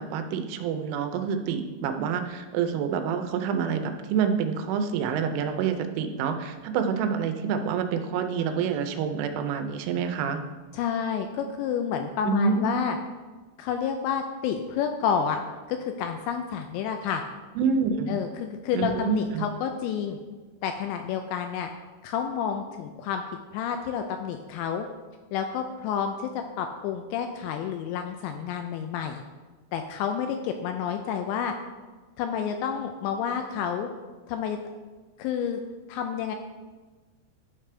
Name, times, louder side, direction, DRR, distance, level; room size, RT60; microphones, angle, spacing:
voice 1, 0.0-10.4 12.3-12.7 17.6-18.2 18.7-19.5, right 6 dB, 90° right, 7 dB, 3.2 m, -27 dB
voice 2, 10.7-13.0 13.6-15.4 15.7-17.2 18.1-20.2 20.6-21.7 22.0-23.2 23.5-24.9 25.3-26.3 26.6-29.2 29.7-31.5 32.2-33.9 34.3-34.6 35.2-35.6 35.9-36.4, left 7 dB, 85° left, 5 dB, 2.6 m, -29 dB
12.0 x 5.1 x 3.3 m, 1.3 s
omnidirectional pair, 5.5 m